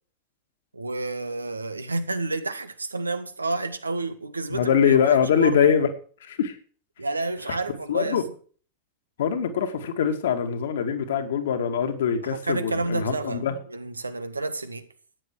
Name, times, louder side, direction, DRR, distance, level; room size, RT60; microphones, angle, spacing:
voice 1, 0.7-5.6 7.0-8.2 12.2-13.4 13.7-14.9, right 2 dB, 80° right, 1.6 m, -30 dB
voice 2, 4.5-5.9 6.2-6.6 7.5-7.6 7.9-8.2 9.2-13.5, left 7 dB, 60° left, 2.4 m, -23 dB
15.0 x 10.0 x 4.9 m
figure-of-eight pair, 90°, 0 cm